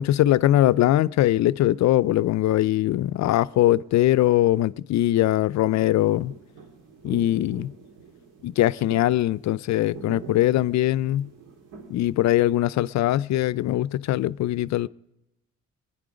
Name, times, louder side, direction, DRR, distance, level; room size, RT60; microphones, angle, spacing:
voice 1, 0.0-6.3 7.0-7.7 8.4-11.3 11.9-14.9, left 14 dB, 65° left, 0.5 m, -21 dB
sound 1, 5.6-12.7, right 5 dB, 85° right, 2.3 m, -45 dB
21.5 x 10.0 x 5.0 m
cardioid pair, 90°, 30 cm